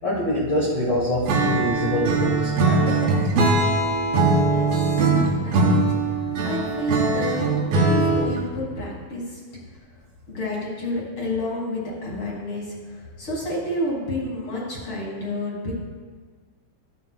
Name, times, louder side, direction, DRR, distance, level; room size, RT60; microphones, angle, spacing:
voice 1, 0.0-3.1, left 1 dB, 60° left, -6 dB, 1.1 m, -25 dB
Acoustic guitar / Strum, 1.3-8.5, right 3 dB, 90° right, 2.9 m, -21 dB
voice 2, 4.4-7.5 7.8-9.4 10.3-15.7, left 1 dB, 45° left, -4 dB, 2.2 m, -30 dB
13.0 x 8.0 x 2.3 m, 1.5 s
omnidirectional pair, 4.1 m